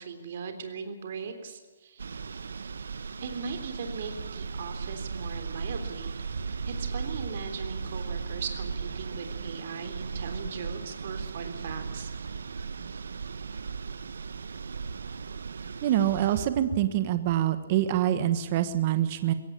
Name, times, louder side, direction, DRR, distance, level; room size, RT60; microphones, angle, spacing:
voice 1, 0.0-2.0 3.2-6.2 6.7-12.1, right 5 dB, 45° right, 7 dB, 3.5 m, -39 dB
sound 1, 2.0-16.5, right 5 dB, 90° right, 1.0 m, -37 dB
voice 2, 15.8-19.3, right 11 dB, 30° right, 10 dB, 1.2 m, -25 dB
22.5 x 17.0 x 8.8 m, 1.3 s
hypercardioid pair, 170°, 0 cm